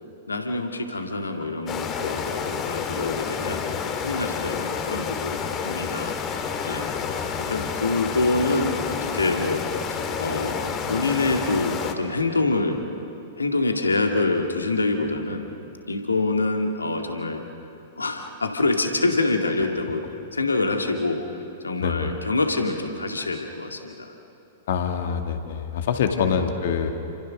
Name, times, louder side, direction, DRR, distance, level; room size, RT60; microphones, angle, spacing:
voice 1, 0.3-6.1 6.6-6.9 7.5-9.6 9.9-12.8 13.4-15.5 15.9-17.4 18.0-20.0 20.3-21.4 21.6-24.1 26.1-26.4, left 3 dB, 80° left, 4 dB, 2.3 m, -26 dB
sound 1, 1.7-11.9, left 6 dB, 30° left, 2.1 m, -29 dB
voice 2, 7.0-7.5 21.8-22.1 24.7-26.9, left 7 dB, 60° left, 5 dB, 2.4 m, -26 dB
29.0 x 26.5 x 6.5 m, 2.8 s
figure-of-eight pair, 100°, 0 cm